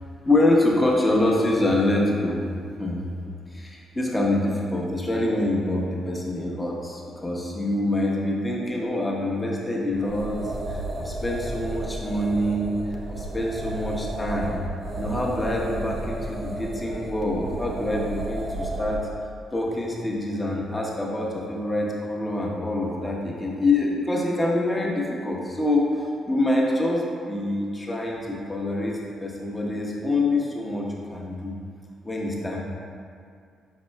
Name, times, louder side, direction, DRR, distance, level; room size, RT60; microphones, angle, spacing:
voice 1, 0.2-2.4 2.8-3.0 3.5-10.4 10.7-14.6 15.0-19.1 19.5-31.6 32.0-32.6, left 1 dB, 20° left, -2 dB, 0.9 m, -25 dB
sound 1, 9.9-19.1, right 2 dB, 40° right, 0.5 m, -33 dB
5.4 x 4.1 x 2.3 m, 2.2 s
hypercardioid pair, 45°, 0 cm